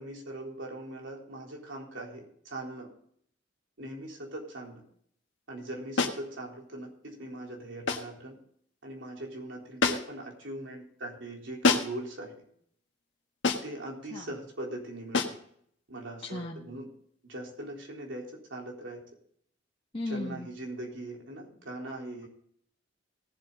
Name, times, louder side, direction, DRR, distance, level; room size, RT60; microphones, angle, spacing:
voice 1, 0.0-2.9 3.8-4.8 5.5-8.4 8.8-12.3 13.6-15.3 15.9-16.9 17.3-19.0 20.1-22.3, right 1 dB, 70° right, -1 dB, 3.8 m, -40 dB
sound 1, 6.0-6.3 7.9-8.2 9.8-10.2 11.6-12.1 13.4-13.8 15.1-15.5, left 4 dB, 70° left, 1.5 m, -27 dB
voice 2, 16.2-16.7 19.9-20.5, left 2 dB, 30° left, -2 dB, 1.4 m, -36 dB
18.5 x 7.7 x 3.9 m, 0.65 s
head